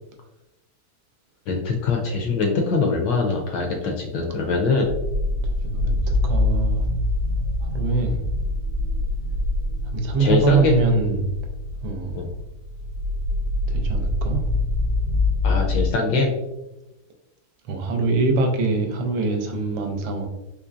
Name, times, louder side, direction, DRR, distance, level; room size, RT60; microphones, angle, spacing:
voice 1, 1.5-4.9 10.2-10.8 12.2-12.3 15.4-16.3, left 4 dB, 75° left, 2 dB, 1.1 m, -22 dB
sound 1, 4.8-15.9, left 2 dB, 45° right, 0.8 m, -25 dB
voice 2, 5.6-6.8 7.6-8.2 9.9-11.2 11.8-12.2 13.7-14.4 17.7-20.3, right 3 dB, 75° right, 3 dB, 1.2 m, -23 dB
3.8 x 3.0 x 2.4 m, 0.96 s
omnidirectional pair, 2.2 m